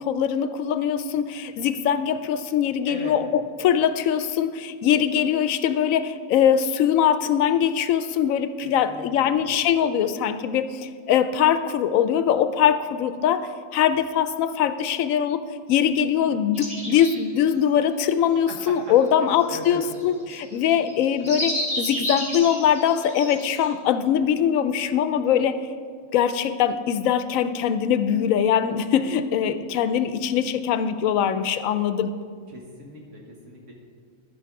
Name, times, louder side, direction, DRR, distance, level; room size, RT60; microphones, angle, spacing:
voice 1, 0.0-15.4 15.7-25.6 26.1-32.2, left 9 dB, 90° left, 12 dB, 1.0 m, -22 dB
voice 2, 2.9-3.2 8.6-9.3 18.5-18.9 19.2-19.8 20.5-20.8 32.5-33.7, right 1 dB, 65° right, -1 dB, 1.7 m, -39 dB
sound 1, 16.5-17.4 19.6-23.7, equal, 5° right, 2.8 m, -31 dB
13.5 x 5.8 x 4.7 m, 2.1 s
omnidirectional pair, 1.4 m